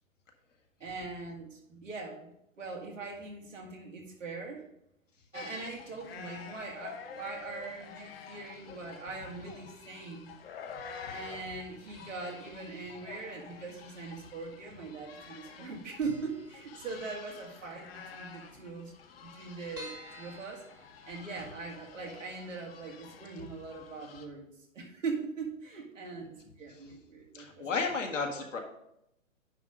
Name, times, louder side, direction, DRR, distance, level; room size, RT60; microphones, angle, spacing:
voice 1, 0.8-4.6 5.3-10.3 11.1-18.9 19.2-20.7 21.1-27.7 28.3-28.6, right 4 dB, 65° right, 0 dB, 2.3 m, -41 dB
sound 1, 5.3-24.3, left 6 dB, 45° left, 1.0 m, -49 dB
sound 2, 11.9-12.5 12.7-12.8 13.8-14.5 14.8-14.9 15.2-15.3 15.6-15.7 16.0-17.3 17.7-17.8 18.1-18.2 18.4-18.5 19.0-21.6 22.0-22.1 22.5-22.6, equal, 10° right, 1.4 m, -52 dB
voice 2, 27.3-28.6, left 4 dB, 65° left, 2 dB, 1.7 m, -32 dB
9.9 x 3.6 x 5.2 m, 0.78 s
figure-of-eight pair, 125°, 40 cm